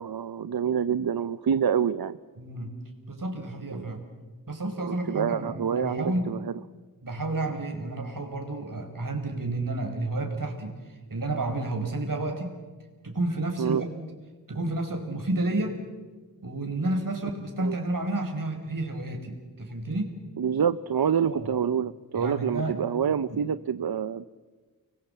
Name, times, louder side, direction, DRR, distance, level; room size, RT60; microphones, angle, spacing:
voice 1, 0.0-2.2 3.7-3.8 4.9-6.5 13.6-13.8 17.6-17.8 20.4-24.3, right 7 dB, 80° right, 14 dB, 0.7 m, -27 dB
voice 2, 2.4-2.8 3.1-4.0 4.5-6.4 7.0-12.6 13.0-13.9 14.5-15.8 16.4-20.2 21.3-21.5 22.2-22.8 23.3-23.4, right 2 dB, 60° right, 4 dB, 5.1 m, -31 dB
30.0 x 22.0 x 8.0 m, 1.3 s
wide cardioid pair, 55°, 36 cm